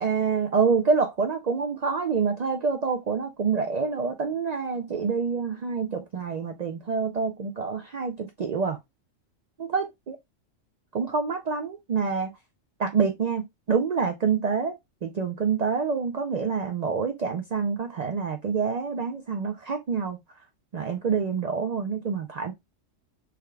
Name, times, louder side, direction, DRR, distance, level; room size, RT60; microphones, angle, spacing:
voice 1, 0.0-8.8 9.6-10.2 10.9-12.3 12.8-20.2 20.7-22.5, right 5 dB, 85° right, 0.3 m, -27 dB
3.5 x 2.2 x 3.2 m
omnidirectional pair, 1.3 m